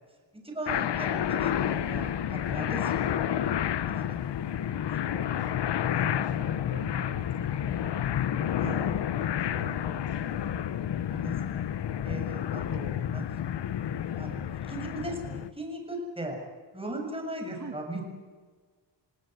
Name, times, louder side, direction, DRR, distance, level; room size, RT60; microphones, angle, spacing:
voice 1, 0.3-3.5 3.9-4.2 4.4-5.2 5.9-6.1 8.6-8.9 11.1-11.6 12.0-13.2 14.2-16.4 16.7-18.0, right 1 dB, 10° right, 1 dB, 7.3 m, -38 dB
sound 1, 0.7-15.5, left 10 dB, 65° left, 1.0 m, -30 dB
voice 2, 5.0-5.8 6.1-8.2 8.8-10.6 17.5-17.8, right 5 dB, 40° right, 3 dB, 2.5 m, -47 dB
27.5 x 17.5 x 9.4 m, 1.5 s
cardioid pair, 100°, 46 cm